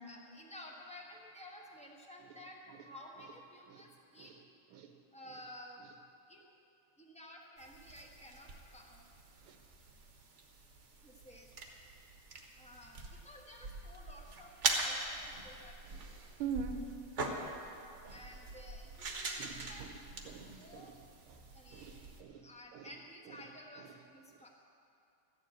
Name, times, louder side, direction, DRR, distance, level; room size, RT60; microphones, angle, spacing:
voice 1, 0.0-4.3 5.1-5.8 6.3-6.4 7.0-9.1 11.0-11.7 12.6-16.3 18.1-19.8 20.6-20.9 21.5-22.0 22.4-24.5, left 1 dB, 5° left, 0 dB, 0.5 m, -53 dB
sound 1, 7.6-22.2, right 3 dB, 40° right, 1.1 m, -43 dB
voice 2, 16.4-16.8 18.0-18.1 19.4-19.9 20.3-20.9 21.3-21.4 21.7-22.4 22.7-22.9, right 6 dB, 80° right, 6 dB, 1.6 m, -43 dB
13.5 x 7.4 x 8.9 m, 2.6 s
omnidirectional pair, 2.4 m